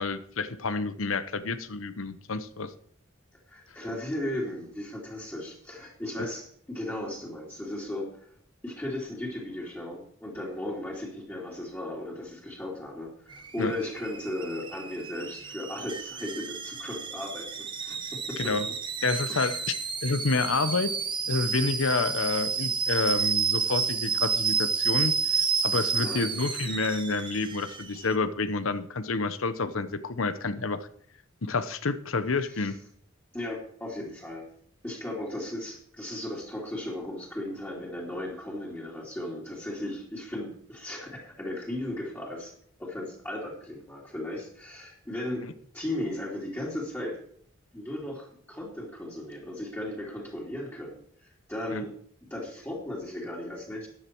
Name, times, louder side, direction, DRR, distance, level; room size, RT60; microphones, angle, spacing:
voice 1, 0.0-2.7 6.2-6.3 13.6-13.7 18.4-18.7 19.0-19.7 20.0-20.9 21.3-30.9 31.4-32.7 51.7-51.8, left 3 dB, 85° left, 12 dB, 1.0 m, -29 dB
voice 2, 3.5-8.3 8.6-18.7 19.3-19.6 26.0-26.7 32.5-32.7 33.3-34.5 34.8-42.5 42.8-45.5 45.7-47.2 47.7-51.9 52.3-53.9, left 1 dB, 10° left, -5 dB, 2.9 m, -36 dB
Alarm / Boiling, 13.3-28.1, right 6 dB, 25° right, 1.2 m, -31 dB
13.5 x 10.0 x 4.6 m, 0.62 s
head